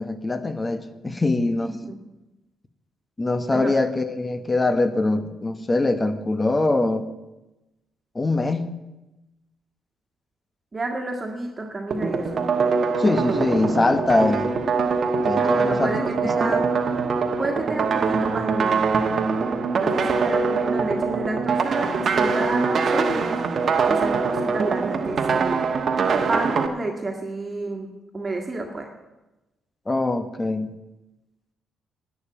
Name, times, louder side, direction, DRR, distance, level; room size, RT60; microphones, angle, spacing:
voice 1, 0.0-1.7 3.2-7.1 8.1-8.7 13.0-14.6 15.2-16.1 16.4-16.6 29.9-30.7, left 2 dB, 25° left, 10 dB, 1.2 m, -23 dB
voice 2, 10.7-12.5 15.4-16.6 17.4-18.8 19.8-23.4 23.8-25.7 26.3-28.9, right 2 dB, 35° right, 1 dB, 1.7 m, -30 dB
sound 1, 11.9-26.7, right 5 dB, 55° right, 1.2 m, -23 dB
11.5 x 7.2 x 8.7 m, 1.0 s
hypercardioid pair, 50°, 0 cm